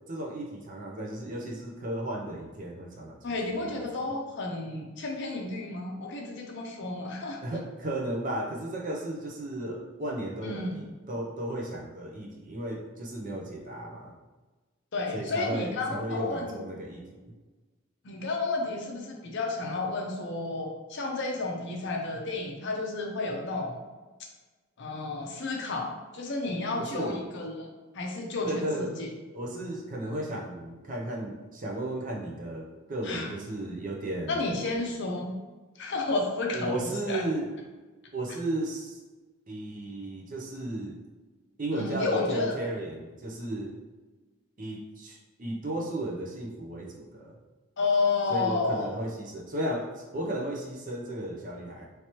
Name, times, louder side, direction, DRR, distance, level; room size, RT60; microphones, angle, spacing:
voice 1, 0.1-3.8 7.4-14.1 15.1-17.3 26.8-27.2 28.5-29.0 29.3-34.4 36.5-37.5 38.1-39.0 39.5-41.0 41.6-43.7 44.6-47.4 48.3-51.9, right 1 dB, 35° right, -1 dB, 0.5 m, -34 dB
voice 2, 3.2-7.6 10.4-10.8 14.9-16.6 18.0-23.8 24.8-25.9 26.1-27.7 27.9-29.1 33.0-33.3 34.3-35.4 35.8-36.8 37.1-37.2 41.7-42.6 47.8-48.9, left 3 dB, 50° left, 1 dB, 0.5 m, -31 dB
3.2 x 2.9 x 2.9 m, 1.3 s
head